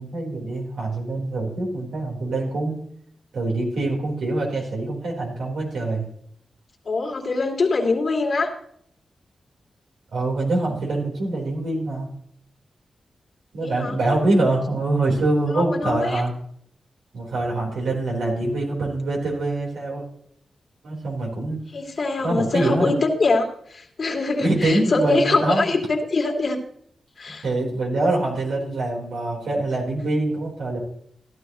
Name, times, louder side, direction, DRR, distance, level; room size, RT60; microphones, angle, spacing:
voice 1, 0.0-2.8 3.3-6.1 10.1-12.1 13.5-16.3 17.1-20.0 20.8-21.6 22.2-22.9 24.4-25.7 27.4-30.8, right 2 dB, 90° right, -3 dB, 4.0 m, -24 dB
voice 2, 6.9-8.5 13.6-14.0 15.5-16.2 21.7-26.6 27.2-27.4, left 3 dB, 55° left, 0 dB, 2.5 m, -23 dB
15.5 x 11.5 x 3.1 m, 0.67 s
cardioid pair, 70°, 0 cm